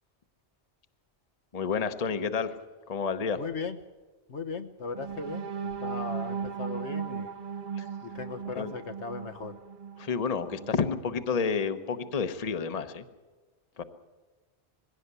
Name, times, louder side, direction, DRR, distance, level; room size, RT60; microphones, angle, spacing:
voice 1, 1.5-2.5 2.9-3.4 7.8-7.9 8.6-8.7 10.0-13.0 13.8-13.9, left 5 dB, 35° left, 10 dB, 1.0 m, -30 dB
voice 2, 3.3-3.8 4.3-7.3 8.0-9.6, left 4 dB, 80° left, 7 dB, 1.5 m, -37 dB
sound 1, 4.9-10.9 11.4-11.5 11.9-12.1, right 6 dB, 50° right, 1.0 m, -37 dB
21.5 x 16.5 x 8.2 m, 1.3 s
omnidirectional pair, 1.2 m